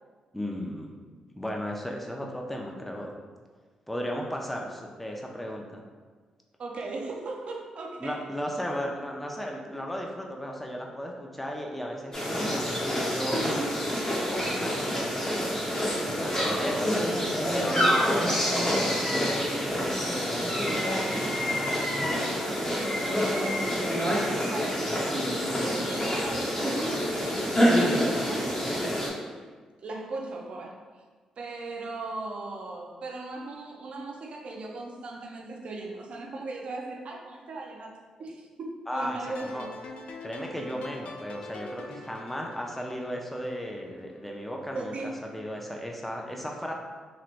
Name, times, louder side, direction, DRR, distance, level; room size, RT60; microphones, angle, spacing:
voice 1, 0.3-1.0 1.3-3.1 3.9-5.8 8.0-13.4 14.3-15.0 16.2-17.1 17.5-22.0 22.3-22.7 38.9-39.2 39.4-39.7 40.2-44.9 45.3-46.7, equal, 5° left, 0 dB, 0.6 m, -35 dB
voice 2, 6.6-8.3 16.4-17.4 22.7-24.9 25.6-28.9 29.3-29.4 29.8-30.8 31.4-37.9 38.2-39.7 44.7-45.1, right 3 dB, 60° right, 0 dB, 0.5 m, -38 dB
sound 1, 12.1-29.1, equal, 25° left, 0.9 m, -27 dB
sound 2, 39.2-44.3, left 3 dB, 75° left, 0.3 m, -45 dB
3.2 x 2.8 x 2.5 m, 1.5 s
supercardioid pair, 60°, 2 cm